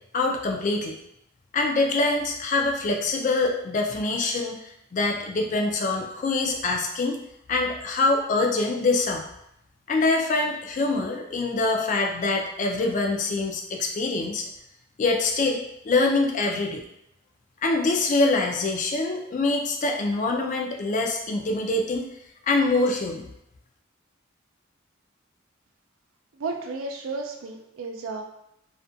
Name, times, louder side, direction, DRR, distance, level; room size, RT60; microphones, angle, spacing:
voice 1, 0.1-1.0 1.5-7.2 7.5-9.2 9.9-14.4 15.0-16.8 17.6-22.1 22.5-23.3, left 3 dB, 40° left, 2 dB, 0.3 m, -24 dB
voice 2, 26.4-28.2, right 3 dB, 75° right, 3 dB, 0.4 m, -33 dB
2.4 x 2.1 x 2.6 m, 0.81 s
head